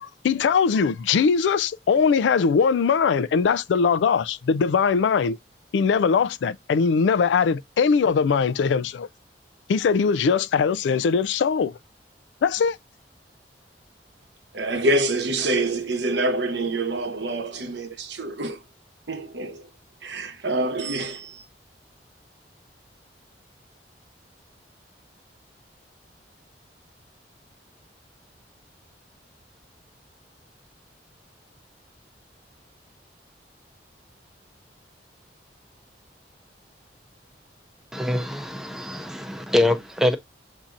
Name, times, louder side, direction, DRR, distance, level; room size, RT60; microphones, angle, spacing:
voice 1, 0.0-5.4 5.7-9.1 9.7-11.7 12.4-12.8, left 5 dB, 90° left, 0.3 m, -21 dB
voice 2, 14.5-18.6 19.1-19.7 20.0-21.4, right 2 dB, 80° right, 0.9 m, -26 dB
voice 3, 37.9-40.2, left 1 dB, 5° right, 0.5 m, -24 dB
7.1 x 2.7 x 2.5 m
head